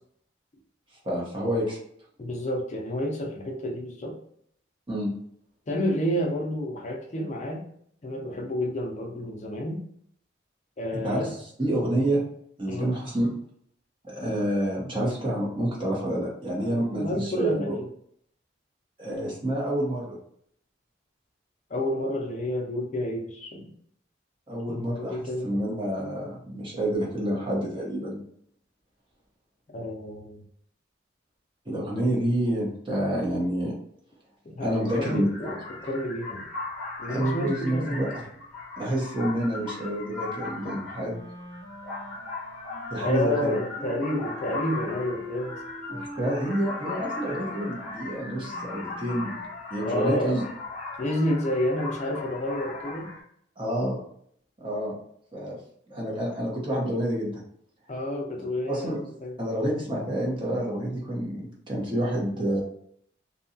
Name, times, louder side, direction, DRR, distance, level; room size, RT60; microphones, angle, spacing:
voice 1, 1.0-1.8 4.9-5.1 10.9-12.2 12.6-13.3 14.0-17.8 19.0-20.2 24.5-28.2 31.7-33.7 34.6-35.3 37.1-38.2 38.8-41.2 42.9-43.6 45.9-49.3 49.7-50.4 53.6-54.0 54.6-54.9 55.3-55.6 55.9-57.4 58.7-59.0 59.4-62.6, right 1 dB, 25° right, -4 dB, 0.7 m, -28 dB
voice 2, 2.2-4.2 5.7-7.7 8.0-9.9 10.8-11.3 12.7-12.9 16.6-17.9 21.7-23.7 24.7-25.6 29.7-30.4 34.4-36.5 37.0-38.1 43.0-45.6 45.9-46.0 49.8-50.3 51.0-53.1 57.9-59.3, left 1 dB, 35° left, 0 dB, 0.4 m, -30 dB
sound 1, 34.8-53.2, left 3 dB, ahead, 0.9 m, -38 dB
Wind instrument woodwind instrument, 41.0-49.6, left 1 dB, 85° left, 0.7 m, -42 dB
2.7 x 2.2 x 2.6 m, 0.66 s
head